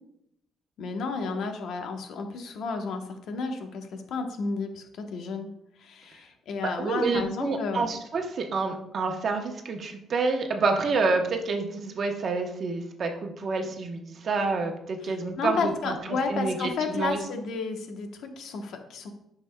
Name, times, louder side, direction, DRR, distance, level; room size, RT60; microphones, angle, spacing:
voice 1, 0.8-5.5 5.8-7.8 15.0-19.1, left 4 dB, 70° left, 5 dB, 1.0 m, -32 dB
voice 2, 6.8-15.9 16.3-17.2, right 3 dB, 45° right, 4 dB, 1.0 m, -28 dB
10.0 x 5.9 x 2.2 m, 0.78 s
cardioid pair, 125°, 0 cm